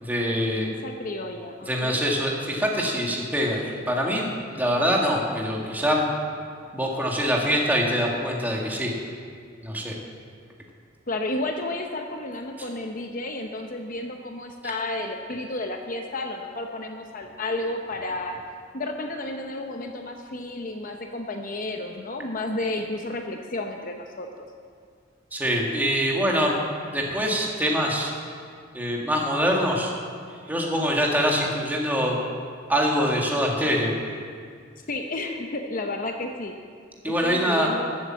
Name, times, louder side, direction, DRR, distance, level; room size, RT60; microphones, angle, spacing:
voice 1, 0.0-0.7 1.6-4.3 4.5-6.1 6.7-8.9 9.6-9.9 25.3-26.6 26.9-28.1 28.7-29.9 30.5-32.2 32.7-33.9 37.0-37.7, equal, 10° right, -1 dB, 1.9 m, -24 dB
voice 2, 0.5-2.0 11.1-18.4 18.7-24.5 34.9-36.5 37.0-38.0, left 2 dB, 45° left, 4 dB, 0.8 m, -32 dB
13.5 x 8.6 x 7.5 m, 2.2 s
head